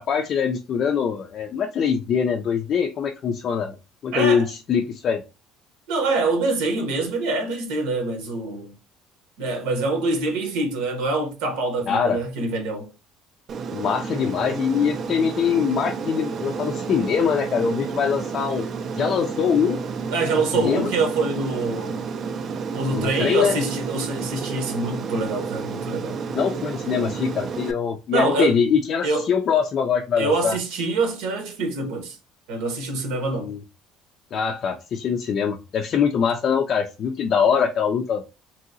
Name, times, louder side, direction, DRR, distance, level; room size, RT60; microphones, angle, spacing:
voice 1, 0.0-3.8 4.0-5.2 11.9-12.2 13.7-18.7 18.9-19.8 20.5-20.9 22.9-23.6 26.3-30.6 33.4-33.6 34.3-38.2, left 7 dB, 45° left, 0.3 m, -23 dB
voice 2, 4.1-4.5 5.9-8.7 9.4-12.9 20.1-22.1 22.7-26.2 28.1-28.6 29.0-29.3 30.2-32.2 32.5-33.5, right 3 dB, 90° right, 0.9 m, -25 dB
Aircraft, 13.5-27.7, right 5 dB, 40° right, 0.3 m, -31 dB
3.0 x 2.7 x 2.5 m
cardioid pair, 135°, 0 cm